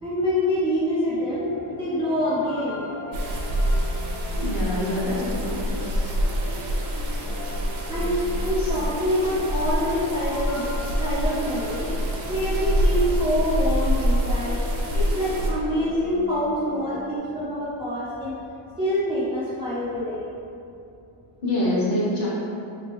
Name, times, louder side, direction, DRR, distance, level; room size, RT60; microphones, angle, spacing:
voice 1, 0.0-3.4 7.3-10.7 11.0-11.9 12.3-14.6 14.9-18.3 18.8-20.3, equal, 15° right, -11 dB, 0.3 m, -26 dB
sound 1, 1.2-17.2, left 2 dB, 80° left, 0.6 m, -38 dB
sound 2, 3.1-15.5, equal, 70° right, 0.7 m, -26 dB
voice 2, 4.4-6.1 8.6-8.7 21.4-22.3, left 1 dB, 45° left, -7 dB, 1.0 m, -26 dB
3.3 x 3.0 x 2.9 m, 2.6 s
cardioid pair, 160°, 49 cm